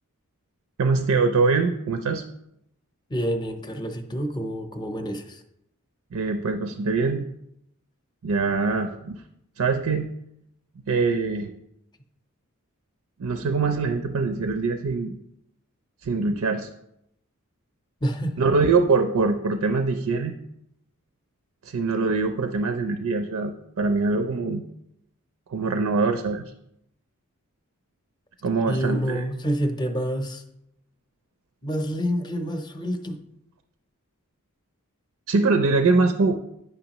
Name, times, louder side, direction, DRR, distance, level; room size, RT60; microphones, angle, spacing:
voice 1, 0.8-2.2 6.1-7.2 8.2-9.2 9.6-10.1 10.9-11.5 13.2-15.2 16.0-16.7 18.4-20.3 21.6-24.6 25.5-26.5 28.4-29.2 35.3-36.4, right 4 dB, 80° right, 7 dB, 0.5 m, -23 dB
voice 2, 3.1-5.4 18.0-18.4 28.7-30.4 31.6-33.3 36.0-36.1, equal, 20° left, 5 dB, 0.6 m, -28 dB
9.2 x 5.7 x 2.9 m, 0.80 s
head